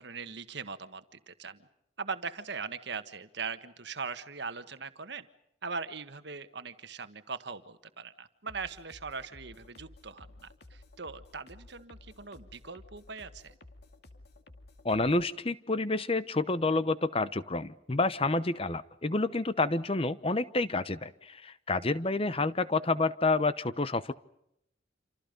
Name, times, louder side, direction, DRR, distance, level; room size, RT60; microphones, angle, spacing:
voice 1, 0.0-1.7 2.0-5.3 5.6-13.5, right 5 dB, 60° right, 11 dB, 1.5 m, -40 dB
sound 1, 8.5-15.3, left 2 dB, 55° left, 2.3 m, -54 dB
voice 2, 14.8-24.1, left 3 dB, 30° left, 15 dB, 0.9 m, -29 dB
28.0 x 27.5 x 5.3 m, 0.77 s
head